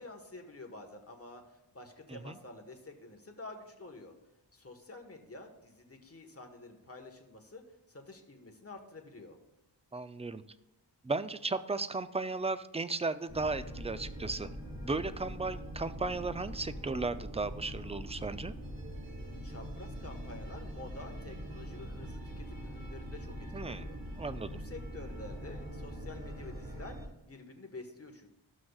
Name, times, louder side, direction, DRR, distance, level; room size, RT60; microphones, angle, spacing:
voice 1, 0.0-4.1 4.5-7.6 7.9-9.4 19.4-24.0 24.4-27.0 27.2-28.3, left 2 dB, 30° left, 3 dB, 1.5 m, -49 dB
voice 2, 9.9-10.4 11.0-14.5 14.8-18.5 23.5-23.9 24.1-24.6, right 3 dB, 15° right, 12 dB, 0.4 m, -35 dB
sound 1, 13.3-27.1, equal, 45° right, 2.0 m, -43 dB
14.5 x 6.1 x 2.4 m, 0.95 s
cardioid pair, 45°, 47 cm